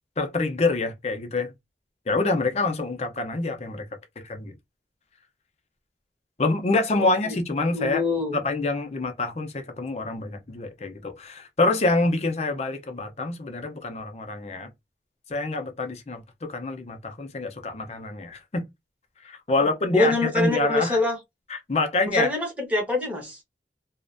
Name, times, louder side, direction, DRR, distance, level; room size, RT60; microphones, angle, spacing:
voice 1, 0.2-1.5 2.1-3.9 4.2-4.5 6.4-8.0 8.3-14.7 15.3-16.2 16.5-18.7 19.2-21.0 21.5-22.3, left 3 dB, 40° left, 0.5 m, -26 dB
voice 2, 7.0-7.4 7.7-8.4 19.6-19.7 19.9-21.2 22.1-23.4, left 2 dB, 10° right, 0.8 m, -25 dB
2.4 x 2.1 x 2.4 m
head